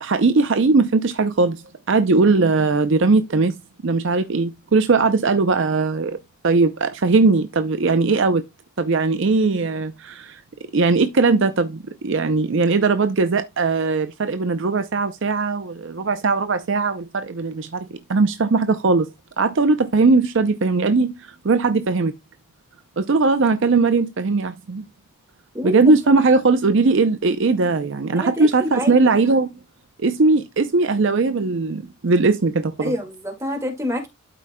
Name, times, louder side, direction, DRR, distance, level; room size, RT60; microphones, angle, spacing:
voice 1, 0.0-1.6 1.9-3.6 3.8-6.2 6.4-8.4 8.8-10.4 10.7-19.1 19.4-22.1 23.0-24.8 25.6-29.5 30.0-32.9, right 3 dB, 55° right, 0.5 m, -19 dB
voice 2, 25.5-25.9 28.2-29.1 32.8-34.1, equal, 15° right, 2.0 m, -27 dB
12.5 x 4.9 x 2.2 m
head